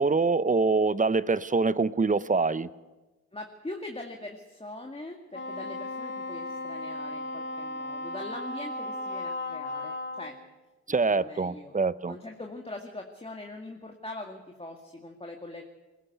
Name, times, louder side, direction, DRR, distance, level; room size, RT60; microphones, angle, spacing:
voice 1, 0.0-2.7 10.9-12.1, right 4 dB, 25° right, 16 dB, 0.8 m, -25 dB
voice 2, 3.3-10.3 11.1-11.7 12.1-15.6, left 2 dB, 20° left, 2 dB, 2.1 m, -42 dB
Wind instrument woodwind instrument, 5.3-10.4, left 2 dB, 40° left, 2.4 m, -36 dB
21.0 x 15.0 x 8.3 m, 1.2 s
cardioid pair, 55°, 29 cm